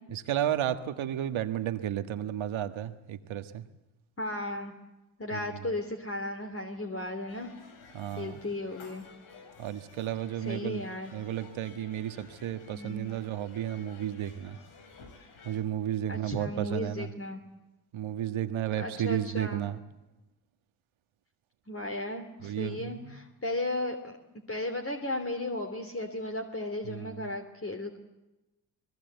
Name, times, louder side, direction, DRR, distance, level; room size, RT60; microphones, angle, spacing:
voice 1, 0.1-3.6 5.3-5.7 7.9-8.4 9.6-10.8 11.1-14.6 15.4-17.1 17.9-19.8 22.4-23.2 26.9-27.3, right 11 dB, 70° right, 9 dB, 1.6 m, -33 dB
voice 2, 4.2-4.7 5.2-7.5 8.2-9.1 10.4-11.1 12.7-13.1 16.1-17.4 18.8-19.6 21.7-24.1 24.5-28.0, left 1 dB, 25° left, 4 dB, 3.0 m, -35 dB
sound 1, 7.3-15.6, left 4 dB, 90° left, 3.9 m, -53 dB
25.5 x 20.5 x 8.2 m, 0.99 s
supercardioid pair, 50°, 49 cm